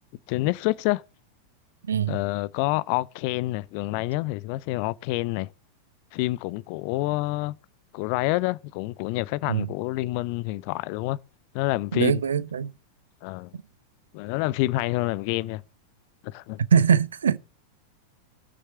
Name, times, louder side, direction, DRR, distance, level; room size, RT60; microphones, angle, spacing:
voice 1, 0.3-1.0 2.1-5.5 6.1-7.6 7.9-11.2 11.5-12.2 13.2-13.5 14.1-15.6 16.2-16.6, left 19 dB, 45° left, 0.4 m, -27 dB
voice 2, 1.8-2.2 9.5-9.7 11.9-12.7 13.5-13.6 16.6-17.4, right 7 dB, 70° right, 0.5 m, -22 dB
7.4 x 6.5 x 8.0 m
figure-of-eight pair, 90°, 0 cm